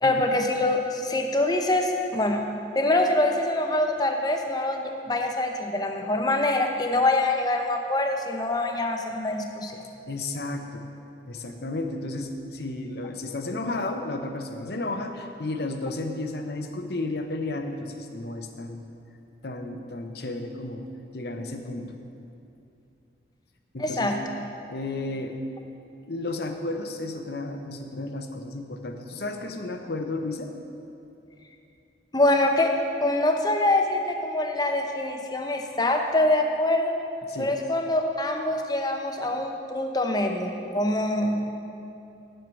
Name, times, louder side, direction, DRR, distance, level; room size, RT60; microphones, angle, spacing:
voice 1, 0.0-2.4 2.7-9.8 23.8-24.2 32.1-36.9 37.4-41.5, left 1 dB, 20° left, 3 dB, 0.7 m, -24 dB
voice 2, 10.1-10.9 11.3-18.8 19.4-20.8 21.1-22.0 23.7-24.2 24.7-25.3 26.1-30.5 37.3-37.5, left 2 dB, 55° left, 5 dB, 0.8 m, -33 dB
7.7 x 6.7 x 8.3 m, 2.7 s
head